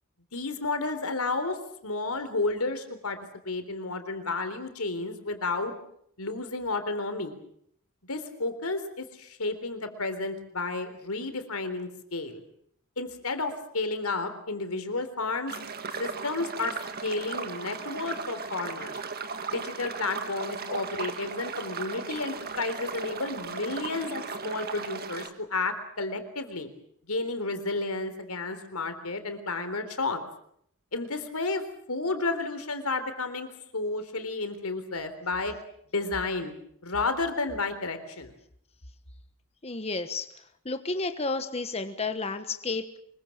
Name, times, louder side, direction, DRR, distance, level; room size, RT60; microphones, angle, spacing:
voice 1, 0.3-1.6 1.8-3.2 3.4-5.7 6.2-7.3 8.1-12.4 13.0-15.5 16.0-16.8 17.0-19.0 19.5-26.7 27.1-30.2 30.9-31.6 31.9-33.5 33.7-35.5 35.9-36.5 36.8-38.3, left 3 dB, 85° left, 9 dB, 3.8 m, -31 dB
sound 1, 15.5-25.3, right 5 dB, 45° right, 2.0 m, -37 dB
voice 2, 39.6-40.3 40.6-42.9, left 3 dB, 30° left, 8 dB, 1.3 m, -31 dB
25.0 x 22.5 x 7.4 m, 0.68 s
head